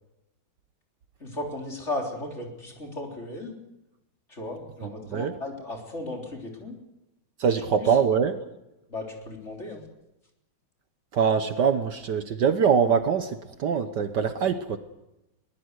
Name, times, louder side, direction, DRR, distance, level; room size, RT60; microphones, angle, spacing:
voice 1, 1.2-3.6 4.3-6.8 7.8-8.0 8.9-9.8, left 2 dB, 35° left, 1 dB, 3.9 m, -35 dB
voice 2, 4.8-5.3 7.4-8.4 11.1-14.8, right 6 dB, 60° right, 9 dB, 1.5 m, -23 dB
22.0 x 19.0 x 8.1 m, 0.94 s
omnidirectional pair, 2.2 m